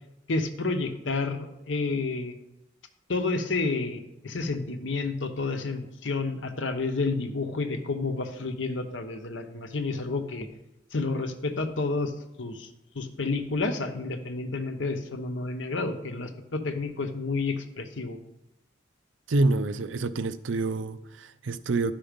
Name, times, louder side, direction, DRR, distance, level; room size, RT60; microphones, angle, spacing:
voice 1, 0.3-2.3 3.1-10.5 10.9-12.1 12.4-12.7 12.9-18.2, left 3 dB, 80° left, 0.9 m, -30 dB
voice 2, 19.3-21.9, right 2 dB, 85° right, 0.5 m, -27 dB
11.5 x 5.6 x 5.1 m
head